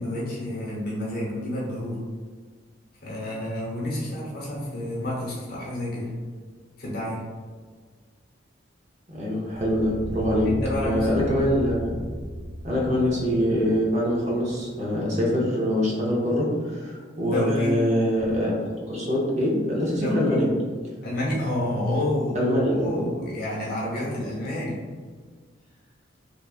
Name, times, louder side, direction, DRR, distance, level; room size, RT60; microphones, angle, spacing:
voice 1, 0.0-2.0 3.0-6.1 6.8-7.3 10.4-11.5 17.2-17.8 20.0-20.4 21.0-22.4 22.7-24.8, left 1 dB, 55° left, -5 dB, 0.8 m, -29 dB
voice 2, 9.1-11.9 12.6-20.5 22.3-23.0, equal, 40° right, -3 dB, 0.6 m, -24 dB
sound 1, 9.6-14.7, equal, 90° right, 0.4 m, -36 dB
2.8 x 2.3 x 2.3 m, 1.5 s
head